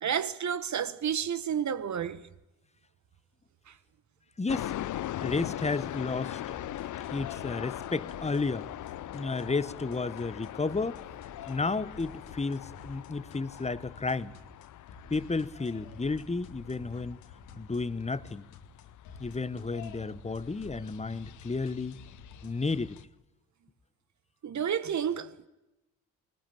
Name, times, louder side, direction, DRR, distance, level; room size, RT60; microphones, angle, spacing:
voice 1, 0.0-2.2 24.4-25.5, right 8 dB, 50° right, 1.6 m, -30 dB
voice 2, 4.4-4.7 5.2-6.6 7.1-8.7 9.1-11.0 11.5-14.3 15.1-17.2 17.6-18.4 19.2-22.0 22.4-23.0, left 3 dB, 20° left, 1.3 m, -32 dB
sound 1, 4.5-23.0, left 13 dB, 55° left, 0.7 m, -41 dB
sound 2, 6.5-23.2, left 5 dB, 70° left, 2.3 m, -51 dB
20.5 x 20.0 x 8.8 m
hypercardioid pair, 50°, 36 cm